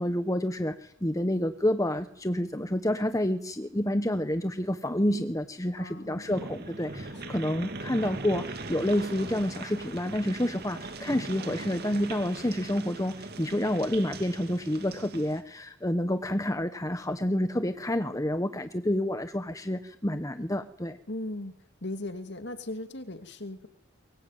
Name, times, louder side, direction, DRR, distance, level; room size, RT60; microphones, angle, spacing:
voice 1, 0.0-21.0, left 1 dB, 15° left, 9 dB, 1.1 m, -29 dB
voice 2, 5.8-6.3 21.1-21.5 21.8-23.7, left 1 dB, 55° left, 9 dB, 2.6 m, -37 dB
sound 1, 6.3-15.4, right 3 dB, 50° right, 2.6 m, -40 dB
24.0 x 22.0 x 9.3 m, 0.70 s
head